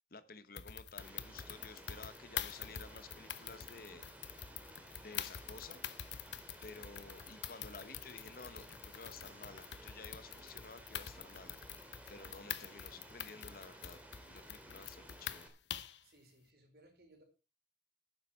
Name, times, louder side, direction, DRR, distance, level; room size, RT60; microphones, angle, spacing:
voice 1, 0.0-4.1 5.0-5.8 6.6-11.6 12.1-14.0 14.3-15.5, left 4 dB, 50° left, 13 dB, 1.1 m, -53 dB
sound 1, 0.6-16.0, left 10 dB, 75° left, 0.9 m, -46 dB
Rain, 1.0-15.5, right 1 dB, 10° right, 2.4 m, -56 dB
voice 2, 16.0-17.2, right 1 dB, 55° right, 3 dB, 4.6 m, -63 dB
12.0 x 9.8 x 4.4 m, 0.29 s
head